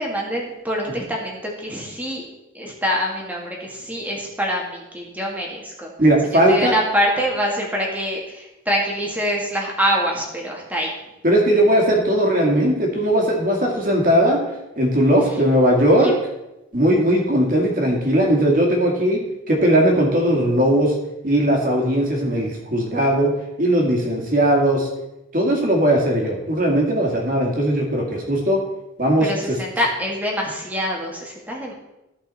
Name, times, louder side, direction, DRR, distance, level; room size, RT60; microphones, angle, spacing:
voice 1, 0.0-2.2 2.5-5.9 6.5-10.9 16.0-16.1 29.2-31.7, equal, 10° right, -2 dB, 1.8 m, -25 dB
voice 2, 6.0-6.7 11.2-14.4 14.8-16.1 16.7-19.2 19.5-20.9 21.2-23.3 23.6-24.9 25.3-28.6 29.0-29.6, right 1 dB, 45° right, 0 dB, 2.2 m, -18 dB
14.5 x 5.4 x 4.2 m, 0.94 s
head